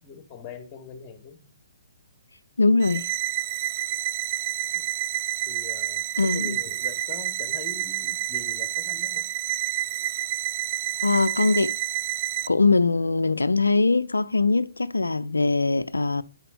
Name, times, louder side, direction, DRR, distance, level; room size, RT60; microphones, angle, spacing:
voice 1, 0.0-1.5 4.7-4.9 5.4-9.2, left 5 dB, 20° left, 2.7 m, -42 dB
voice 2, 2.6-3.1 6.2-6.6 11.0-11.7 12.5-16.2, left 3 dB, 75° left, 0.6 m, -22 dB
sound 1, 2.8-12.5, right 14 dB, 35° right, 0.6 m, -29 dB
11.0 x 10.5 x 6.8 m
figure-of-eight pair, 125°, 0 cm